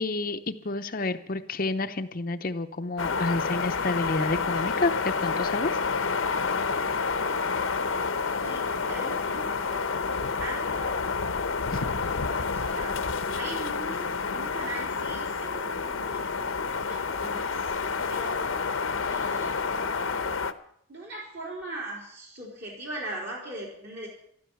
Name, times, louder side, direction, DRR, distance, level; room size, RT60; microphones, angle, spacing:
voice 1, 0.0-5.8 6.3-6.5 11.7-11.8, left 3 dB, 40° left, 8 dB, 0.7 m, -29 dB
sound 1, 3.0-20.5, left 5 dB, 70° left, 0.9 m, -29 dB
voice 2, 8.4-11.1 11.5-19.6 20.9-24.1, right 2 dB, 50° right, -3 dB, 3.8 m, -41 dB
13.5 x 12.5 x 7.0 m, 0.67 s
head